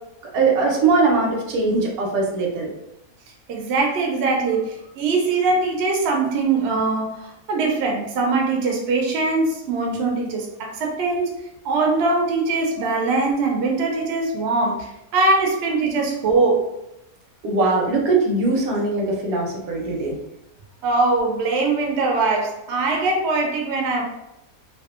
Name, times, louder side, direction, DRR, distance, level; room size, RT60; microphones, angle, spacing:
voice 1, 0.3-2.7 17.4-20.2, right 3 dB, 80° right, 0 dB, 1.1 m, -21 dB
voice 2, 3.5-11.3 11.6-16.6 20.8-24.0, right 3 dB, 65° right, 0 dB, 0.7 m, -22 dB
2.6 x 2.3 x 2.4 m, 0.87 s
omnidirectional pair, 1.5 m